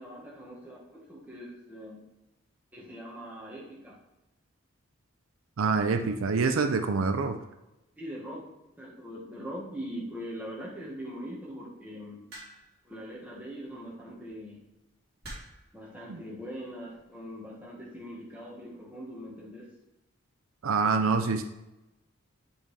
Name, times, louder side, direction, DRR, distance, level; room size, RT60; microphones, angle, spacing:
voice 1, 0.0-2.0 2.7-4.0 8.0-8.4 8.8-12.2 12.8-14.6 15.7-19.7, equal, 10° right, -4 dB, 1.3 m, -41 dB
voice 2, 5.6-7.4 16.1-16.2 20.6-21.4, right 4 dB, 75° right, 7 dB, 0.5 m, -26 dB
sound 1, 12.3-12.8 14.0-14.3 15.2-15.7 16.7-17.0, right 1 dB, 45° right, 2.0 m, -45 dB
8.8 x 3.5 x 3.3 m, 0.96 s
head